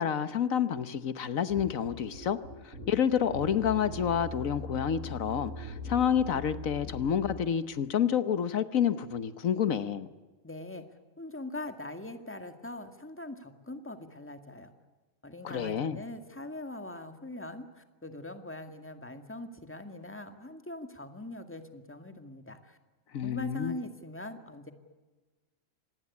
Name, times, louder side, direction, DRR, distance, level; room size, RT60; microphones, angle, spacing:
voice 1, 0.0-2.4 2.6-10.1 15.4-16.0 23.1-23.8, left 8 dB, 80° left, 13 dB, 1.4 m, -29 dB
sound 1, 1.5-7.4, left 1 dB, 65° right, 5.5 m, -41 dB
voice 2, 10.4-10.9 11.2-14.7 15.2-22.8 23.2-24.7, left 2 dB, 10° left, 7 dB, 2.0 m, -42 dB
26.0 x 19.5 x 8.4 m, 1.3 s
omnidirectional pair, 1.4 m